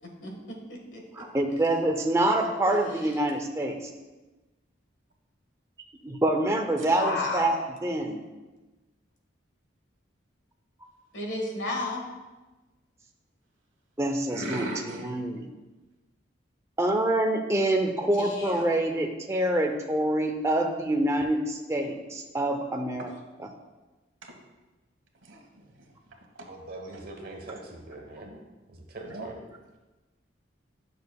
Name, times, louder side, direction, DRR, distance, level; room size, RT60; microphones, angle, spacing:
voice 1, 0.0-1.0 1.9-2.0 2.3-2.9 6.8-7.6 11.1-12.1 18.2-18.7, left 2 dB, 75° left, 1 dB, 1.5 m, -34 dB
voice 2, 1.1-3.8 6.0-7.5 7.8-8.2 14.0-15.5 16.8-23.1, right 1 dB, 15° right, 3 dB, 0.5 m, -26 dB
voice 3, 14.3-15.1 23.0-23.1 24.2-24.4 25.2-25.7 26.4-26.5 26.8-26.9 29.1-29.3, right 1 dB, 90° right, 1 dB, 1.3 m, -37 dB
voice 4, 26.5-28.4 28.7-29.4, right 2 dB, 50° right, 1 dB, 1.1 m, -42 dB
10.5 x 6.5 x 2.3 m, 1.1 s
head